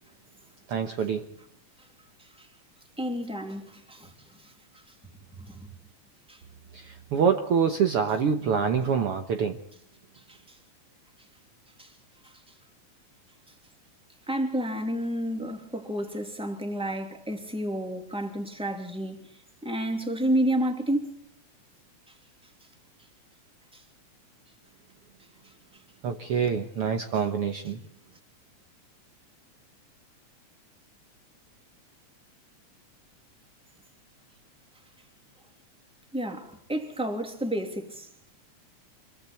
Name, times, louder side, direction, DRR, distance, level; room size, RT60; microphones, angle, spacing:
voice 1, 0.7-1.3 6.7-9.6 26.0-27.8, right 6 dB, 60° right, 1.8 m, -26 dB
voice 2, 3.0-4.8 5.4-5.7 6.3-6.4 10.1-10.6 11.8-11.9 12.2-12.3 14.3-19.3 19.6-21.2 23.7-23.8 25.4-25.5 36.1-38.1, right 1 dB, ahead, 2.7 m, -31 dB
26.5 x 23.5 x 4.5 m
omnidirectional pair, 3.5 m